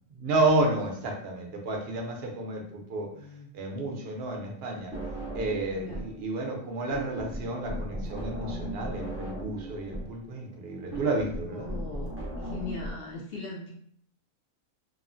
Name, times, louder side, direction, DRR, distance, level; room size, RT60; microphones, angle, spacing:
voice 1, 0.1-3.1 3.5-4.9 5.3-11.7, right 2 dB, 60° right, 1 dB, 0.7 m, -31 dB
voice 2, 3.0-3.5 5.7-6.0 11.5-13.7, left 3 dB, 60° left, -3 dB, 0.6 m, -40 dB
sound 1, 4.9-6.2 6.4-12.9, right 1 dB, 25° right, 0.3 m, -37 dB
2.9 x 2.0 x 2.5 m, 0.62 s
omnidirectional pair, 1.4 m